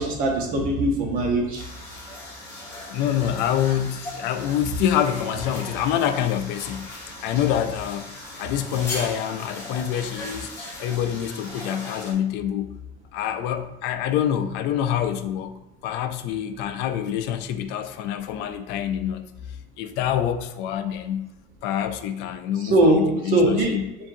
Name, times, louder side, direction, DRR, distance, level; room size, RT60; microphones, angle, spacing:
voice 1, 0.0-1.6 22.7-23.0 23.3-23.7, right 2 dB, 50° right, 0.9 m, -20 dB
sound 1, 1.6-12.1, left 1 dB, 15° left, 1.1 m, -38 dB
voice 2, 2.9-8.1 8.3-10.5 10.8-12.8 13.1-15.5 15.8-19.3 19.8-21.3 21.6-23.9, left 10 dB, 65° left, 0.4 m, -26 dB
7.2 x 2.6 x 2.7 m
cardioid pair, 180°, 19 cm